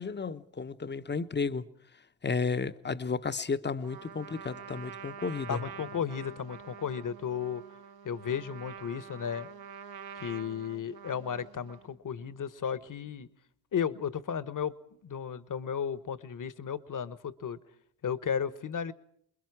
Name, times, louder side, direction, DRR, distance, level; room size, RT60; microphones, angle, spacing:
voice 1, 0.0-1.6 2.2-5.6, left 4 dB, 20° left, 12 dB, 1.0 m, -33 dB
Trumpet, 3.8-11.9, right 7 dB, 45° right, 1.1 m, -46 dB
voice 2, 5.5-7.6 8.0-9.5 10.1-13.3 13.7-14.7 15.0-17.6 18.0-18.9, left 7 dB, 40° left, 15 dB, 1.3 m, -34 dB
28.5 x 22.0 x 4.8 m, 0.68 s
hypercardioid pair, 45°, 50 cm